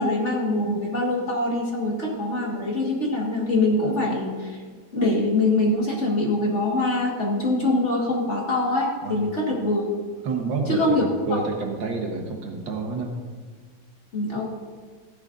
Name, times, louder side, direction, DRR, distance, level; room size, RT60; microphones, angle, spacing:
voice 1, 0.0-4.6 4.9-9.9 10.7-11.1 14.1-14.5, left 2 dB, 40° left, -2 dB, 1.7 m, -23 dB
voice 2, 10.2-13.1, right 4 dB, 70° right, 2 dB, 1.9 m, -28 dB
15.0 x 10.5 x 2.5 m, 1.5 s
omnidirectional pair, 2.2 m